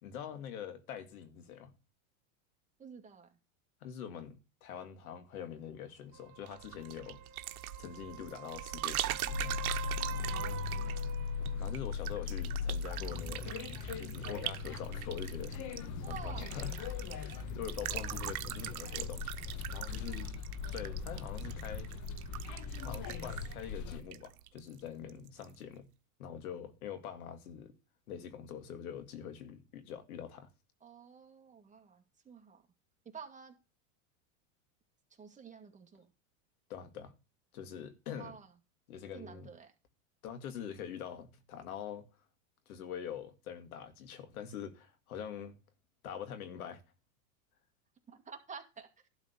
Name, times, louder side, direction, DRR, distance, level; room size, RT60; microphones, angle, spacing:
voice 1, 0.0-1.7 3.8-7.2 7.8-9.7 11.6-13.5 13.9-15.7 16.0-16.9 17.1-19.3 19.7-20.3 20.7-21.9 22.8-25.9 26.2-27.7 28.1-30.5 36.7-37.1 37.5-38.4 38.9-39.5 40.2-42.1 42.7-45.6 46.0-46.8, left 8 dB, 85° left, 2.2 m, -44 dB
voice 2, 2.8-3.4 10.2-11.1 16.0-16.5 17.9-18.3 30.8-32.6 33.1-33.5 35.1-36.1 38.1-38.5 39.1-39.7 48.1-48.9, right 6 dB, 15° right, 2.1 m, -50 dB
sound 1, 6.1-11.8 15.9-16.0, right 10 dB, 60° right, 2.2 m, -47 dB
sound 2, 6.5-24.8 25.1-25.5, right 13 dB, 85° right, 1.0 m, -42 dB
sound 3, 9.3-24.0, left 6 dB, 40° left, 1.4 m, -39 dB
12.0 x 4.1 x 6.7 m
supercardioid pair, 130°, 42 cm